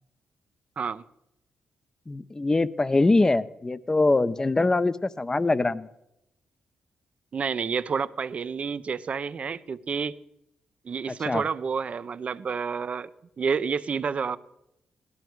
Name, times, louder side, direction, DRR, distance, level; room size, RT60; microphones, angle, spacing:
voice 1, 2.1-5.9 11.1-11.4, left 2 dB, 20° left, 15 dB, 0.6 m, -23 dB
voice 2, 7.3-10.2 10.8-13.1 13.4-14.4, right 6 dB, 50° right, 16 dB, 0.6 m, -29 dB
17.0 x 12.5 x 4.6 m, 0.83 s
cardioid pair, 80°, 3 cm